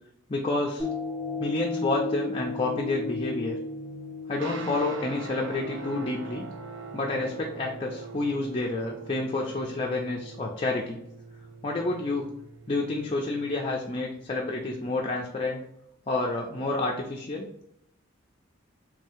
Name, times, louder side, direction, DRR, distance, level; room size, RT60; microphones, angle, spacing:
voice 1, 0.3-0.9 1.4-3.6 4.3-6.4 6.9-11.0 11.6-12.3 12.7-15.6 16.1-17.5, left 2 dB, 30° left, -1 dB, 0.5 m, -29 dB
sound 1, 0.8-9.2 9.7-9.8, left 3 dB, 25° right, 1.2 m, -36 dB
sound 2, 4.3-14.8, right 3 dB, 65° right, 0.5 m, -44 dB
3.3 x 2.7 x 3.4 m, 0.76 s
head